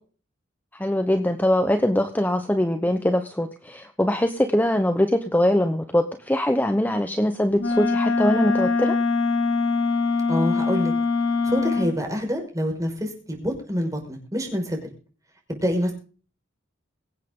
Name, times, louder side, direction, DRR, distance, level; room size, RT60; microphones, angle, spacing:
voice 1, 0.7-9.0, left 1 dB, 10° left, 7 dB, 0.9 m, -22 dB
Wind instrument woodwind instrument, 7.6-11.9, left 4 dB, 75° left, 2.8 m, -23 dB
voice 2, 10.3-10.9 11.5-14.8 15.5-15.9, equal, 15° right, 2 dB, 5.3 m, -26 dB
24.0 x 8.3 x 3.8 m, 0.39 s
head